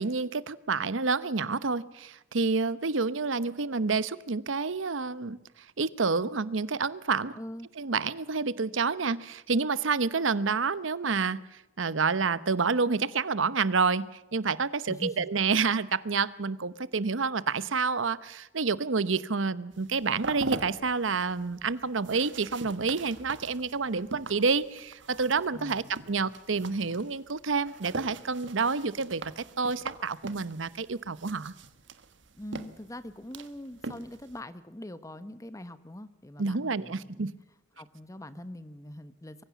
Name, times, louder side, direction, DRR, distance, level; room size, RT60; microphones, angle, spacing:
voice 1, 0.0-5.4 5.8-7.4 7.8-11.4 11.8-31.5 36.4-37.3, right 4 dB, 85° right, 17 dB, 0.9 m, -28 dB
voice 2, 7.3-7.7 14.9-15.3 25.5-25.9 32.3-37.3 37.8-39.4, left 1 dB, 15° left, 13 dB, 1.1 m, -42 dB
sound 1, 19.7-34.4, right 3 dB, 70° right, 1.4 m, -42 dB
23.5 x 16.0 x 7.2 m, 0.95 s
head